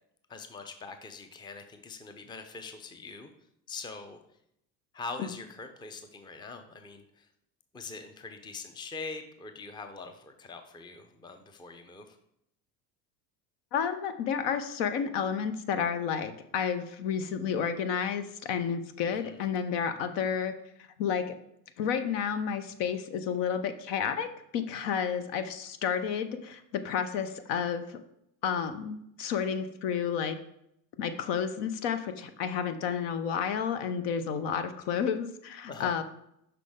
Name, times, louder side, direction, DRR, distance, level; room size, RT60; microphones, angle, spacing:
voice 1, 0.3-3.3 3.7-4.2 4.9-7.3 7.7-12.2 19.1-19.4 35.7-35.9, left 4 dB, 10° left, 7 dB, 0.6 m, -43 dB
voice 2, 13.7-20.5 21.0-21.2 21.8-24.3 24.5-28.0 28.4-30.4 31.0-36.0, left 7 dB, 55° left, 10 dB, 0.8 m, -31 dB
6.0 x 5.6 x 3.6 m, 0.76 s
hypercardioid pair, 80°, 50 cm